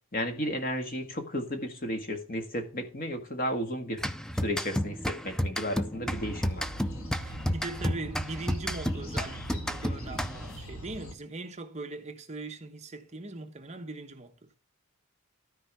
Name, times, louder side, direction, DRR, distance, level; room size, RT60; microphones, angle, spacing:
voice 1, 0.1-4.0 4.4-6.7, equal, 40° left, 1.7 m, -33 dB
sound 1, 4.0-10.6, equal, 5° left, 0.4 m, -32 dB
sound 2, 6.1-11.1, equal, 80° left, 1.8 m, -42 dB
voice 2, 7.2-14.5, right 2 dB, 30° right, 1.1 m, -40 dB
13.0 x 4.6 x 6.1 m
head